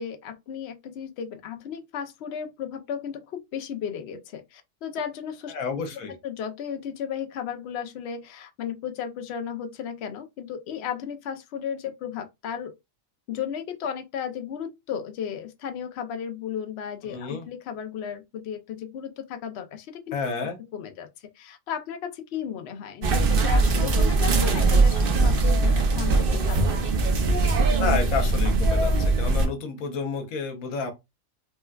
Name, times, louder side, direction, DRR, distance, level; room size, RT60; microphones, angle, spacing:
voice 1, 0.0-12.7 13.3-20.1 20.7-26.8, left 8 dB, 60° left, 0.8 m, -35 dB
voice 2, 5.5-6.2 17.1-17.4 20.1-20.6 27.8-30.9, left 5 dB, 85° left, 1.1 m, -30 dB
sound 1, 23.0-29.5, right 3 dB, 55° right, 0.7 m, -21 dB
4.3 x 2.2 x 2.2 m
omnidirectional pair, 1.4 m